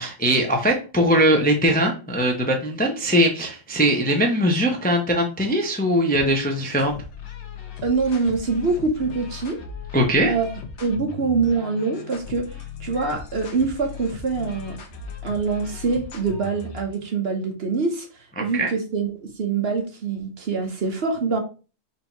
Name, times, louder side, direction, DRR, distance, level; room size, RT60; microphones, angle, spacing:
voice 1, 0.0-6.9 9.9-10.3 18.4-18.7, equal, 10° left, 2 dB, 0.5 m, -21 dB
sound 1, 6.1-17.0, left 6 dB, 60° left, 1.0 m, -38 dB
voice 2, 7.8-9.6 10.2-10.5 10.8-12.5 12.8-14.8 15.2-18.1 18.4-21.4, right 4 dB, 55° right, 3 dB, 1.0 m, -24 dB
4.4 x 2.7 x 4.5 m, 0.34 s
omnidirectional pair, 1.4 m